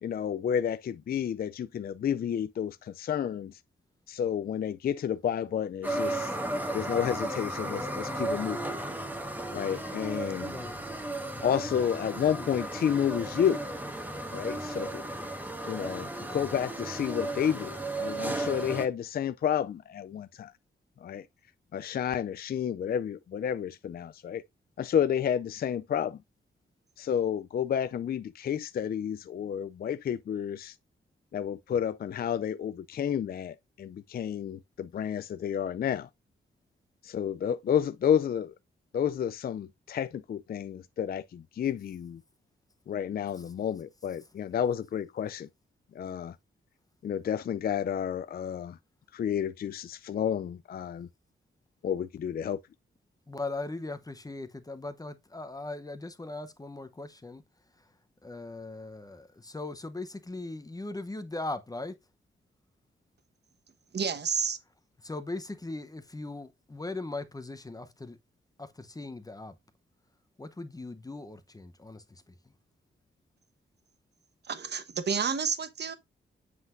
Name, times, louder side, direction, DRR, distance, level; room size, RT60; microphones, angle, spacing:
voice 1, 0.0-3.6 4.1-6.3 6.7-8.6 9.5-10.6 11.4-13.6 14.3-15.0 15.7-20.5 21.0-21.3 21.7-24.4 24.8-26.2 27.0-30.8 31.3-36.1 37.0-38.5 38.9-42.2 42.9-45.5 45.9-46.4 47.0-48.8 49.1-51.1 51.8-52.6, left 8 dB, 45° left, 0.4 m, -30 dB
sound 1, 5.8-18.9, right 1 dB, 10° right, 1.2 m, -35 dB
voice 2, 10.4-10.8 53.3-57.4 58.2-62.0 65.0-68.2 68.6-69.6 70.4-72.3, left 2 dB, 15° left, 0.8 m, -39 dB
voice 3, 63.9-64.6 74.5-76.0, right 6 dB, 55° right, 1.1 m, -30 dB
7.8 x 5.7 x 2.5 m
wide cardioid pair, 105°, 21 cm